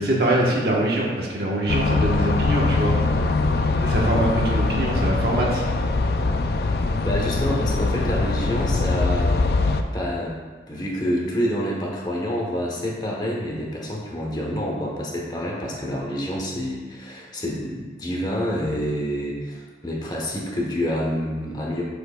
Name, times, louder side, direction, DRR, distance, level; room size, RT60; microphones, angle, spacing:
voice 1, 0.0-2.9 3.8-5.6, right 1 dB, 60° right, -3 dB, 1.2 m, -23 dB
sound 1, 1.7-9.8, left 3 dB, 60° left, 0.4 m, -22 dB
voice 2, 7.0-9.4 9.9-10.3 10.7-21.8, equal, 25° left, -2 dB, 1.1 m, -27 dB
7.7 x 6.3 x 2.3 m, 1.4 s
head